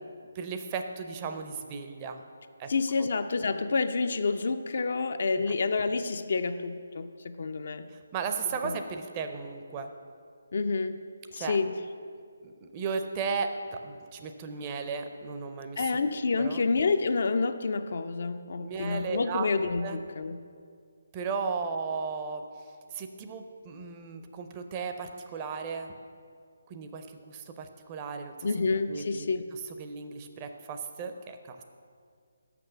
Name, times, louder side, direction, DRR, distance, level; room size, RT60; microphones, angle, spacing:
voice 1, 0.3-2.2 2.6-2.7 3.0-3.1 5.4-5.6 7.9-9.9 11.3-11.6 12.4-15.9 16.4-16.6 18.6-19.5 19.8-20.0 21.1-25.9 26.7-31.6, right 5 dB, 25° right, 6 dB, 0.5 m, -36 dB
voice 2, 2.7-7.9 8.6-8.8 10.5-11.0 11.3-11.8 15.8-20.4 28.4-29.4, left 4 dB, 55° left, 10 dB, 0.4 m, -28 dB
6.4 x 6.0 x 6.6 m, 2.2 s
figure-of-eight pair, 145°, 0 cm